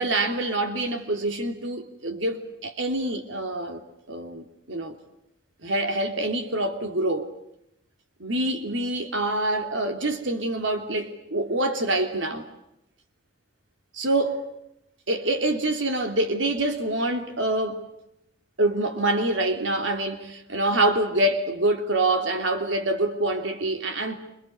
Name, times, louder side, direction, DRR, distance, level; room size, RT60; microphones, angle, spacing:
voice 1, 0.0-3.8 4.1-4.9 5.6-7.3 8.2-12.5 13.9-14.4 15.1-17.8 18.6-24.2, right 1 dB, 85° right, 3.2 m, -26 dB
29.0 x 27.5 x 6.8 m
head